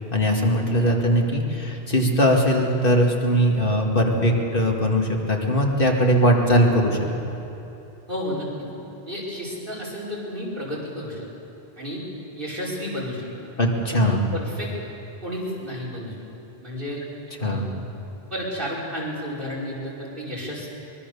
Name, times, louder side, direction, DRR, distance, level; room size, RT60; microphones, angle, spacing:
voice 1, 0.1-7.0 13.6-14.2 17.4-17.7, equal, 55° left, 0 dB, 2.3 m, -20 dB
voice 2, 8.1-8.5 9.1-11.2 11.8-12.0 12.4-13.3 13.9-14.7 15.2-16.1 16.6-17.0 17.4-17.7 18.3-20.7, equal, 55° right, -5 dB, 5.6 m, -31 dB
24.0 x 22.0 x 7.0 m, 2.9 s
omnidirectional pair, 1.1 m